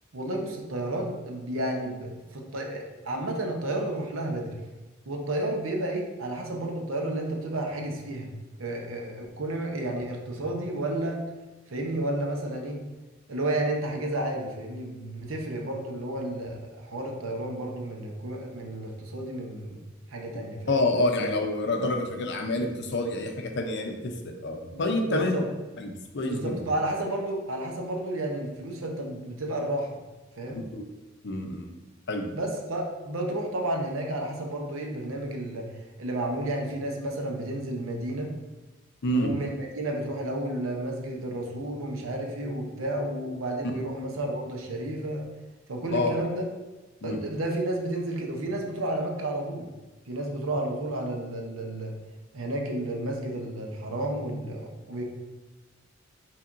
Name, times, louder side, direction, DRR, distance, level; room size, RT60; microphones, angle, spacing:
voice 1, 0.1-4.6 5.1-8.3 8.6-11.2 11.7-12.8 13.3-19.8 20.1-20.8 24.7-25.5 26.2-30.0 30.4-30.6 32.3-35.7 36.0-38.3 39.1-45.3 45.7-46.5 47.0-49.7 50.1-52.0 52.3-55.0, right 1 dB, 85° right, 1 dB, 0.8 m, -31 dB
voice 2, 20.7-25.4 25.8-26.6 30.5-30.8 31.2-31.7 32.1-32.3 39.0-39.3 45.9-46.2 47.0-47.2, left 2 dB, 60° left, 3 dB, 0.6 m, -28 dB
5.8 x 3.4 x 2.6 m, 1.1 s
head